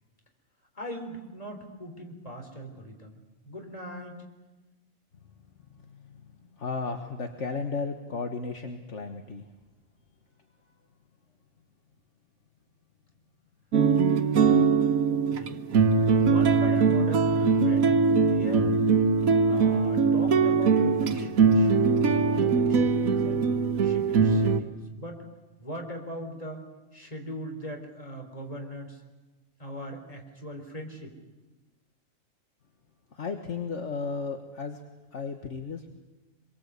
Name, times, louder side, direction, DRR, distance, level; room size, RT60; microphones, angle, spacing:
voice 1, 0.7-4.2 14.0-14.6 15.0-15.7 16.1-18.8 19.5-23.5 23.8-25.2 25.6-26.6 26.9-29.0 29.6-31.2, equal, 25° left, 3 dB, 4.1 m, -40 dB
voice 2, 5.8-9.5 33.1-34.8 35.1-35.9, left 4 dB, 60° left, 5 dB, 1.7 m, -34 dB
sound 1, 13.7-24.6, right 5 dB, 90° right, 1.5 m, -22 dB
26.0 x 23.0 x 8.3 m, 1.2 s
omnidirectional pair, 1.4 m